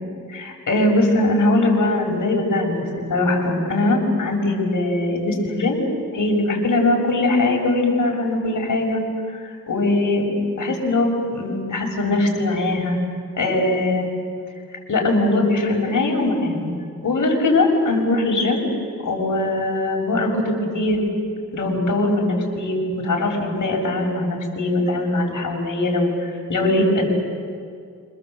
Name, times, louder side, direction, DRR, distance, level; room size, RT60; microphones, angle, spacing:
voice 1, 0.3-2.8 3.1-5.8 6.1-9.0 9.4-10.3 10.5-13.0 13.4-14.1 14.9-16.7 17.0-18.6 19.0-21.0 21.5-27.1, left 2 dB, 60° left, 0 dB, 6.7 m, -21 dB
27.5 x 25.5 x 8.0 m, 2.2 s
cardioid pair, 75°, 33 cm